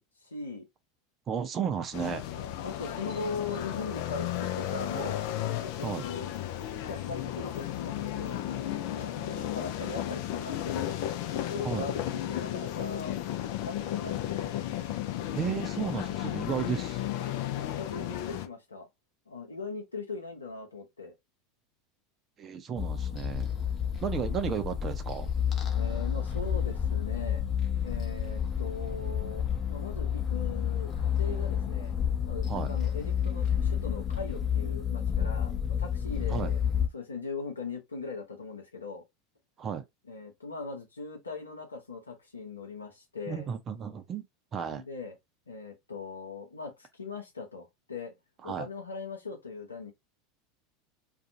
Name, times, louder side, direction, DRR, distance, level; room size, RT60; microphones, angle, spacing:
voice 1, 0.2-0.6 2.3-5.2 5.6-8.4 9.0-11.0 11.4-13.3 13.6-14.6 17.5-18.9 19.3-21.1 25.7-27.4 27.8-32.0 32.3-36.6 36.9-39.0 40.1-43.5 44.7-45.1 45.5-48.1 48.4-49.9, left 4 dB, 85° left, 0.7 m, -40 dB
voice 2, 1.3-2.2 5.8-6.1 11.6-11.9 15.3-17.0 22.4-23.5 24.0-25.3 32.5-32.7 36.3-36.5 39.6-39.8 43.3-44.3 44.5-44.8 48.4-48.7, right 7 dB, 30° right, 0.6 m, -33 dB
sound 1, 1.9-18.5, left 12 dB, 55° left, 0.4 m, -34 dB
sound 2, 22.8-36.9, left 8 dB, 30° left, 0.8 m, -30 dB
2.5 x 2.3 x 2.7 m
figure-of-eight pair, 80°, 0 cm